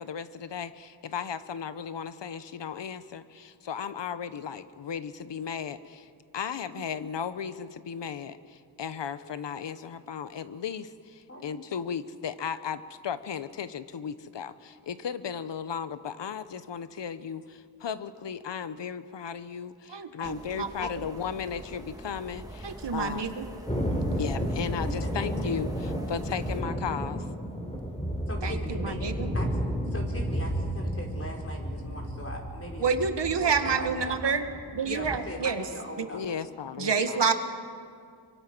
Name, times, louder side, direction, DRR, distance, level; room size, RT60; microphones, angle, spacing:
voice 1, 0.0-6.1 6.3-23.3 24.1-27.2 36.1-37.2, left 7 dB, 75° left, 13 dB, 1.0 m, -36 dB
voice 2, 19.9-21.0 22.6-23.5 28.4-29.3 32.8-34.5 34.8-35.6 36.8-37.3, right 5 dB, 75° right, 7 dB, 1.8 m, -28 dB
sound 1, 20.2-26.6, right 1 dB, 10° right, 2.2 m, -43 dB
Thunder, 23.7-35.2, equal, 15° left, 3.7 m, -32 dB
voice 3, 28.3-29.1 29.3-29.5 29.9-33.0 33.4-34.3 34.8-36.3, left 1 dB, 30° left, -1 dB, 5.2 m, -39 dB
27.0 x 24.0 x 6.2 m, 2.2 s
wide cardioid pair, 80°, 43 cm